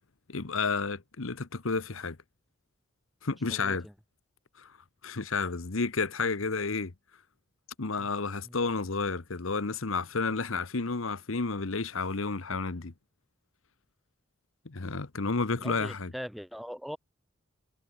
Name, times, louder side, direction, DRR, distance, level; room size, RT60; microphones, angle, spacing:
voice 1, 0.3-2.2 3.2-3.9 4.6-4.7 5.0-6.9 7.8-12.9 14.6-16.1, left 4 dB, 70° left, 1.1 m, -31 dB
voice 2, 3.5-3.9 8.0-8.1 8.4-8.7 15.6-17.0, equal, ahead, 3.8 m, -41 dB
head